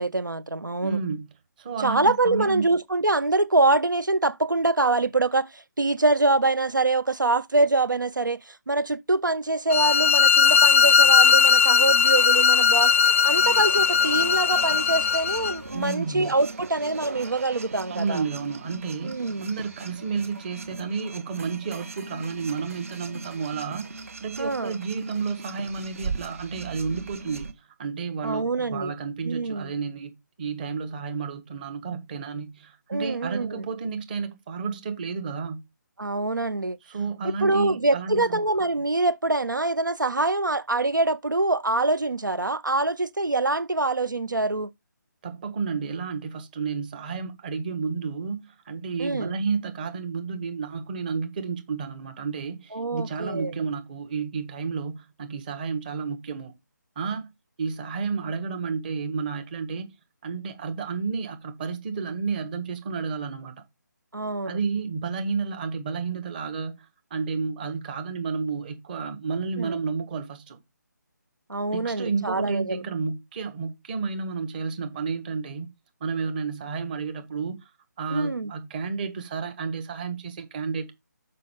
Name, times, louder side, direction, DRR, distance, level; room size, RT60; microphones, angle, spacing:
voice 1, 0.0-1.0 1.8-12.9 13.2-18.2 19.0-19.5 24.4-24.8 28.2-28.9 29.2-29.7 32.9-33.7 36.0-36.8 37.2-44.7 49.0-49.3 52.7-53.5 64.1-64.6 69.6-69.8 71.5-72.8 78.1-78.5, right 2 dB, 90° right, 0.5 m, -25 dB
voice 2, 0.8-1.3 1.6-2.6 15.7-16.3 17.9-23.9 24.2-35.6 36.9-38.4 45.2-56.5 56.9-57.3 57.6-59.9 60.2-63.6 64.4-70.6 71.7-75.7 76.0-77.6 78.0-80.9, right 5 dB, 30° right, 1.5 m, -31 dB
sound 1, 9.7-15.5, left 6 dB, 45° left, 0.4 m, -18 dB
sound 2, 13.4-27.5, right 3 dB, 45° right, 1.3 m, -39 dB
6.8 x 5.5 x 5.1 m
figure-of-eight pair, 150°, 10 cm